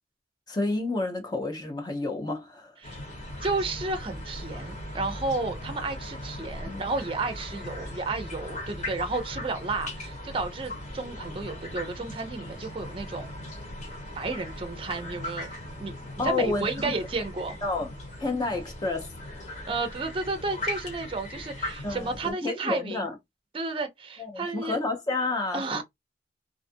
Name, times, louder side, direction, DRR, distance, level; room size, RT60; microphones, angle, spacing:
voice 1, 0.5-2.7 6.6-6.9 16.2-16.9 17.6-17.9 18.2-19.7 21.8-23.1 24.2-25.8, left 3 dB, 25° left, 0.5 m, -30 dB
sound 1, 2.8-22.3, left 1 dB, 45° left, 1.2 m, -39 dB
voice 2, 3.4-13.4 14.2-15.5 15.8-17.6 19.7-23.1 23.5-24.8 25.5-25.8, right 3 dB, 30° right, 0.5 m, -32 dB
2.5 x 2.4 x 2.5 m
head